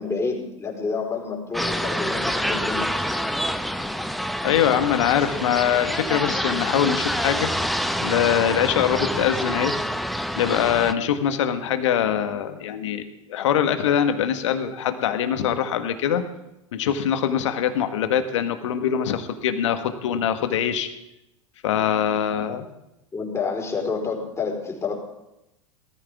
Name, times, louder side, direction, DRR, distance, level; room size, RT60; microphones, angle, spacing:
voice 1, 0.0-3.2 23.1-25.0, left 4 dB, 15° left, 0 dB, 4.2 m, -29 dB
sound 1, 1.5-10.9, equal, ahead, 0.7 m, -27 dB
voice 2, 4.4-7.5 8.0-9.8 10.4-16.2 16.7-20.9 21.6-22.7, left 9 dB, 65° left, 9 dB, 1.5 m, -23 dB
19.5 x 14.0 x 3.6 m, 0.89 s
figure-of-eight pair, 90°, 17 cm